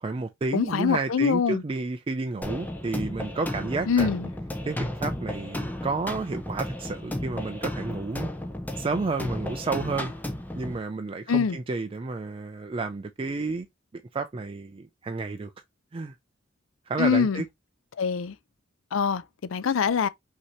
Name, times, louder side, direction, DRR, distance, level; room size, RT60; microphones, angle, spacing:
voice 1, 0.0-4.2 4.6-8.3 8.8-10.1 10.6-13.7 14.1-15.5 15.9-16.1 16.9-17.4, right 3 dB, 25° right, 0.4 m, -31 dB
voice 2, 0.5-1.6 3.9-4.3 11.3-11.6 17.0-17.4 18.0-18.4 18.9-20.1, left 6 dB, 70° left, 0.5 m, -24 dB
sound 1, 2.4-10.8, left 1 dB, 10° left, 0.7 m, -33 dB
5.7 x 2.8 x 2.9 m
head